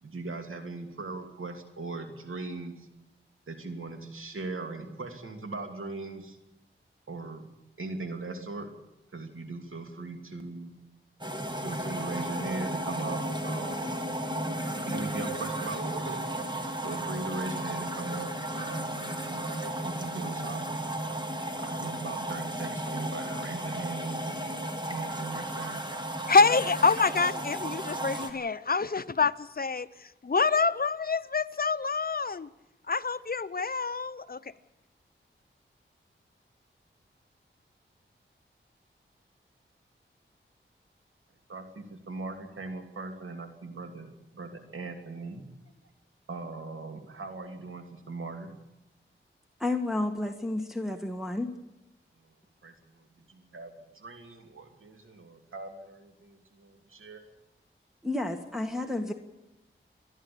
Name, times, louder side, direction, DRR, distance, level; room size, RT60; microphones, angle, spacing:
voice 1, 0.0-2.9 3.5-6.4 7.1-7.5 7.8-8.7 9.1-10.7 11.6-14.0 14.9-16.2 16.8-20.7 21.6-24.5 24.8-25.8 41.5-45.5 46.3-48.5 52.2-52.3 52.6-57.2, right 3 dB, 80° right, 2.8 m, -39 dB
sound 1, 11.2-28.3, right 1 dB, 20° right, 2.7 m, -34 dB
voice 2, 26.3-32.5 32.9-34.5, left 4 dB, 45° left, 0.8 m, -26 dB
voice 3, 49.6-51.5 58.0-59.1, left 2 dB, ahead, 1.7 m, -31 dB
29.0 x 11.0 x 8.7 m
wide cardioid pair, 65°, 21 cm